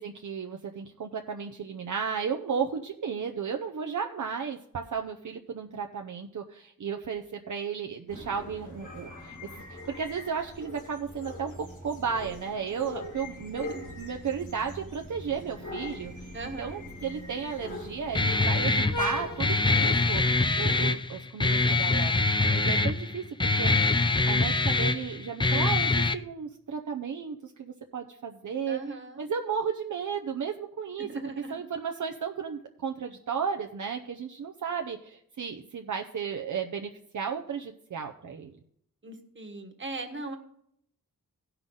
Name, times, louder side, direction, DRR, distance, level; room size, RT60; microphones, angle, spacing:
voice 1, 0.0-11.5 11.8-13.7 14.0-20.2 20.6-23.2 23.5-23.9 24.3-31.1 31.5-38.5, right 6 dB, 60° right, 3 dB, 0.7 m, -34 dB
sound 1, 8.1-20.4, left 2 dB, 60° left, 2.2 m, -40 dB
voice 2, 16.3-16.8 28.7-29.2 31.1-31.6 39.0-40.4, right 3 dB, 35° right, 4 dB, 1.5 m, -39 dB
Guitar, 18.1-26.1, left 3 dB, 15° left, 0.4 m, -24 dB
17.0 x 5.7 x 3.9 m, 0.71 s
wide cardioid pair, 120°, 34 cm